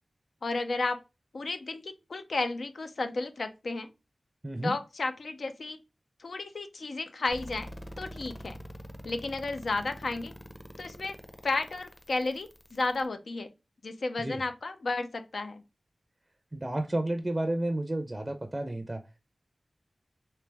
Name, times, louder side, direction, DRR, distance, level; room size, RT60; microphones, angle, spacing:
voice 1, 0.4-1.0 1.3-3.9 4.6-5.8 6.2-7.7 8.0-8.6 9.0-10.3 10.8-11.2 11.4-13.5 13.8-15.6, left 3 dB, 80° left, 0.5 m, -33 dB
sound 1, 7.3-13.1, equal, 15° left, 0.7 m, -45 dB
voice 2, 16.5-19.0, right 1 dB, 25° right, 0.4 m, -31 dB
3.2 x 2.9 x 3.3 m
wide cardioid pair, 65°, 0 cm